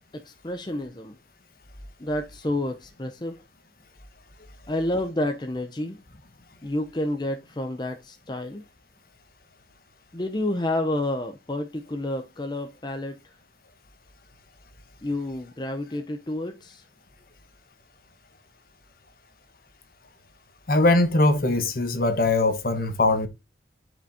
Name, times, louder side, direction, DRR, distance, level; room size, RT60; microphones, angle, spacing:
voice 1, 0.1-1.2 2.0-3.4 4.7-6.0 6.6-8.6 10.1-13.3 15.0-16.8, left 1 dB, 25° left, 0.6 m, -29 dB
voice 2, 20.7-23.3, left 2 dB, 50° left, 1.2 m, -21 dB
11.0 x 5.1 x 2.7 m
head